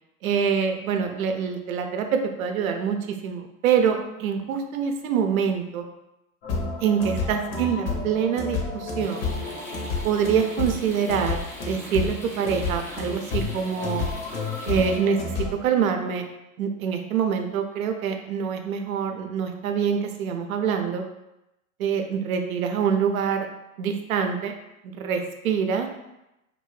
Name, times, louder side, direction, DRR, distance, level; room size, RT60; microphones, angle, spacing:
voice 1, 0.2-5.8 6.8-9.3 10.0-11.4 11.7-14.1 14.6-16.2 16.6-21.0 21.8-23.5 23.8-24.5 24.9-25.9, right 7 dB, 70° right, 5 dB, 0.6 m, -25 dB
sound 1, 6.4-15.5, left 4 dB, 55° left, 0.9 m, -30 dB
sound 2, 9.0-15.0, equal, 5° left, 0.4 m, -41 dB
2.7 x 2.6 x 3.1 m, 0.91 s
hypercardioid pair, 115°, 43 cm